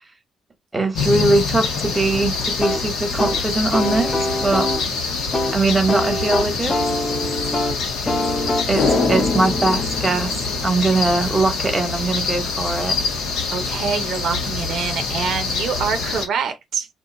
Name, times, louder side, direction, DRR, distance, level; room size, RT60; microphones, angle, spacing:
voice 1, 0.7-4.7 5.5-6.9 8.7-13.0, right 2 dB, 20° right, 1.1 m, -21 dB
sound 1, 0.9-16.3, left 4 dB, 85° left, 1.0 m, -25 dB
sound 2, 2.6-11.2, left 1 dB, 25° left, 0.6 m, -25 dB
sound 3, 8.8-11.2 11.5-11.6, left 4 dB, 60° left, 1.1 m, -25 dB
voice 2, 13.5-16.9, right 6 dB, 70° right, 0.6 m, -25 dB
2.5 x 2.3 x 3.9 m
cardioid pair, 90°, 0 cm